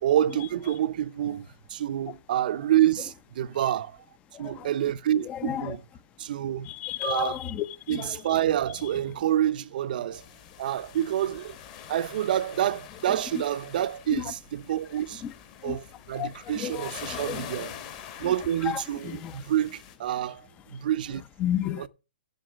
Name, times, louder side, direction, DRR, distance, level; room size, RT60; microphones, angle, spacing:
voice 1, 0.0-4.0 4.4-5.8 6.2-6.7 7.0-7.4 7.9-10.3 10.6-11.6 11.9-15.2 15.6-17.8 18.2-20.4 20.7-21.2 21.8-21.9, right 11 dB, 55° right, 0.6 m, -27 dB
voice 2, 4.3-4.7 5.3-5.7 6.6-8.2 14.1-14.2 15.2-15.3 15.6-15.8 16.1-16.3 16.5-16.9 17.2-17.4 18.7-19.4 21.4-21.9, left 11 dB, 20° left, 0.6 m, -32 dB
sound 1, 10.1-20.0, left 9 dB, 40° left, 1.9 m, -44 dB
7.9 x 6.6 x 7.2 m
hypercardioid pair, 145°, 6 cm